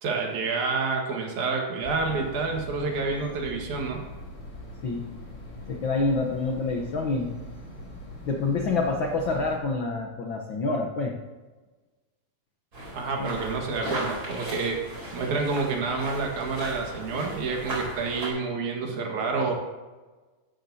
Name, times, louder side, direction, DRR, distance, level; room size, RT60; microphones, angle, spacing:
voice 1, 0.0-4.0 12.9-14.8 15.1-19.5, right 4 dB, 70° right, 1 dB, 3.0 m, -28 dB
sound 1, 1.8-9.6, equal, 25° left, 2.0 m, -42 dB
voice 2, 5.7-7.3 8.2-11.2 13.2-13.4, left 3 dB, 75° left, 2 dB, 1.1 m, -27 dB
sound 2, 12.7-18.3, right 1 dB, 30° right, 3.9 m, -36 dB
15.5 x 11.5 x 2.8 m, 1.3 s
omnidirectional pair, 3.6 m